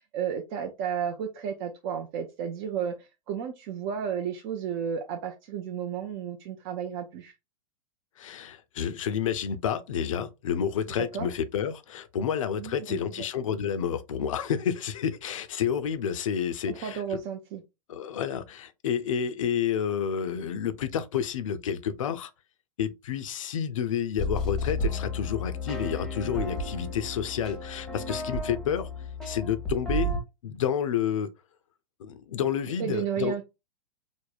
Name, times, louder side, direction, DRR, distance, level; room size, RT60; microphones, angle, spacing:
voice 1, 0.1-7.3 11.0-11.3 12.6-13.3 16.7-17.6 32.8-33.4, right 8 dB, 40° right, 0.5 m, -33 dB
voice 2, 8.2-17.2 17.9-22.3 22.8-28.9 29.3-30.1 30.4-31.3 32.0-33.3, left 8 dB, 65° left, 0.5 m, -30 dB
sound 1, 24.2-30.2, left 1 dB, 5° left, 0.8 m, -32 dB
3.4 x 2.1 x 2.4 m
figure-of-eight pair, 100°, 18 cm